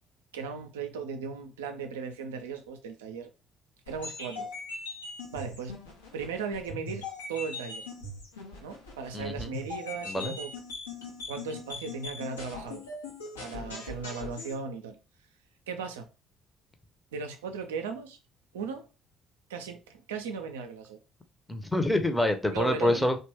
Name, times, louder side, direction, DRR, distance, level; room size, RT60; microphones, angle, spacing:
voice 1, 0.3-3.3 3.9-4.5 5.3-5.8 6.1-7.9 8.6-10.5 11.3-12.8 13.4-15.0 15.7-16.1 17.1-18.2 18.5-18.9 19.5-21.0 22.5-23.1, right 5 dB, 75° right, 0.4 m, -37 dB
sound 1, 3.9-14.5, left 3 dB, 80° left, 0.7 m, -41 dB
voice 2, 9.1-9.5 10.1-10.3 21.5-23.2, left 1 dB, 10° left, 0.6 m, -26 dB
2.9 x 2.2 x 3.0 m
figure-of-eight pair, 50°, 0 cm